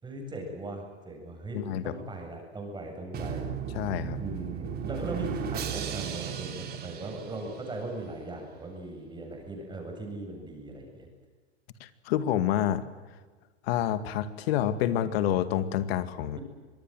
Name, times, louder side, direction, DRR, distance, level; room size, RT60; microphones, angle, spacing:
voice 1, 0.0-3.5 4.2-11.1, right 2 dB, 15° right, 2 dB, 7.7 m, -39 dB
voice 2, 1.5-1.9 3.7-4.2 11.8-12.8 13.6-16.4, left 11 dB, 65° left, 12 dB, 2.2 m, -28 dB
Drum, 3.1-8.0, right 7 dB, 30° right, 3.4 m, -36 dB
25.5 x 20.5 x 7.9 m, 1.4 s
hypercardioid pair, 125°, 33 cm